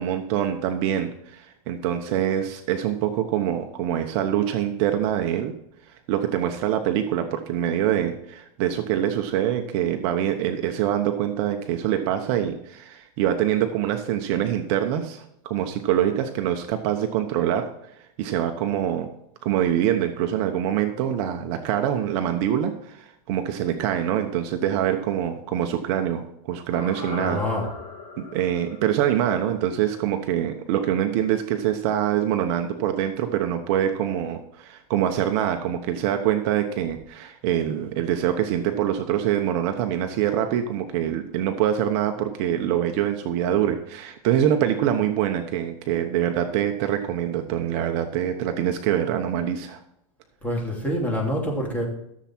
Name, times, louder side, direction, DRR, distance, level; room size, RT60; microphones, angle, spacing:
voice 1, 0.0-5.5 6.1-17.7 18.2-19.1 19.4-27.4 28.2-49.8, right 10 dB, 45° right, 6 dB, 1.0 m, -25 dB
sound 1, 26.7-31.0 31.3-31.4, left 3 dB, 55° left, 5.2 m, -39 dB
voice 2, 27.2-27.7 50.4-51.9, equal, 10° left, -2 dB, 3.0 m, -26 dB
14.0 x 7.4 x 4.5 m, 0.78 s
supercardioid pair, 145°, 19 cm